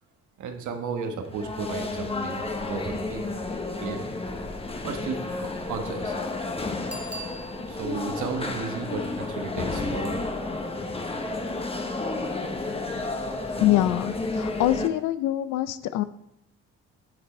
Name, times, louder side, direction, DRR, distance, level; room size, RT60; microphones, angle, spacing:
voice 1, 0.4-3.2 3.8-4.1 4.8-6.2 6.6-6.7 7.7-10.2, right 5 dB, 75° right, 5 dB, 1.3 m, -34 dB
sound 1, 1.2-14.9, left 2 dB, 20° left, 1.0 m, -31 dB
Bicycle bell, 6.9-8.0 13.5-13.6, right 1 dB, 5° right, 1.4 m, -41 dB
voice 2, 13.6-16.0, left 14 dB, 85° left, 14 dB, 0.6 m, -24 dB
9.4 x 6.1 x 4.3 m, 0.79 s
cardioid pair, 90°, 30 cm